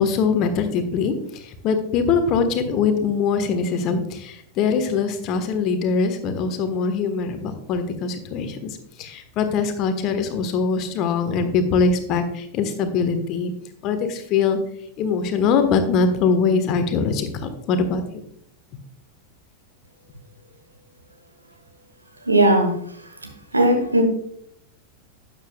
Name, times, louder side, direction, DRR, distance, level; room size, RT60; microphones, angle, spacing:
voice 1, 0.0-13.5 13.8-14.6 15.0-18.0, left 5 dB, 40° left, 8 dB, 1.3 m, -22 dB
voice 2, 22.3-22.7 23.5-24.0, right 1 dB, 80° right, 5 dB, 1.6 m, -17 dB
12.5 x 9.0 x 2.3 m, 0.69 s
figure-of-eight pair, 90°, 0 cm